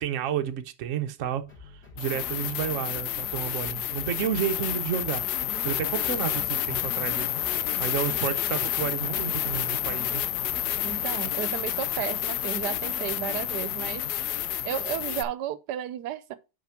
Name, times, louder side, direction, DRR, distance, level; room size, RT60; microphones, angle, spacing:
voice 1, 0.0-5.2 5.6-7.3 7.8-10.2, right 9 dB, 60° right, 1.0 m, -31 dB
sound 1, 1.2-1.3 2.0-15.2, left 11 dB, 75° left, 1.2 m, -29 dB
sound 2, 1.5-11.2, left 2 dB, 40° left, 3.7 m, -50 dB
voice 2, 10.8-14.0 14.3-16.4, right 11 dB, 85° right, 1.2 m, -33 dB
5.8 x 5.1 x 5.7 m
omnidirectional pair, 1.8 m